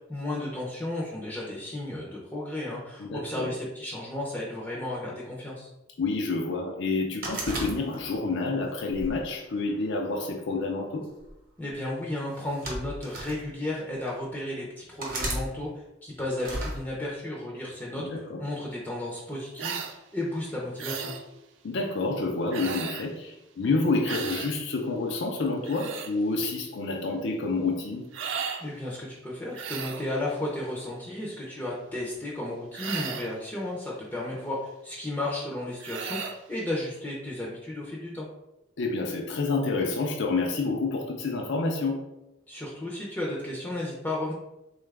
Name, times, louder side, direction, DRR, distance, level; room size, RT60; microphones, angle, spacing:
voice 1, 0.1-5.7 11.6-21.1 28.6-38.3 42.5-44.3, left 1 dB, 10° left, -5 dB, 0.6 m, -34 dB
voice 2, 3.0-3.5 6.0-11.0 17.9-18.4 21.6-28.1 38.8-42.0, left 3 dB, 65° left, 1 dB, 0.5 m, -28 dB
sound 1, 7.2-8.3 8.9-10.1 11.0-11.3 12.3-13.4 14.1-14.2 15.0-15.4 16.4-16.8, right 1 dB, 50° right, 1.0 m, -34 dB
sound 2, 19.6-19.9 20.8-21.2 22.5-23.1 24.0-24.5 25.5-26.1 28.1-28.6 29.5-30.1 32.7-33.4 35.8-36.4, right 6 dB, 70° right, 0.4 m, -35 dB
3.8 x 2.4 x 3.3 m, 0.93 s
head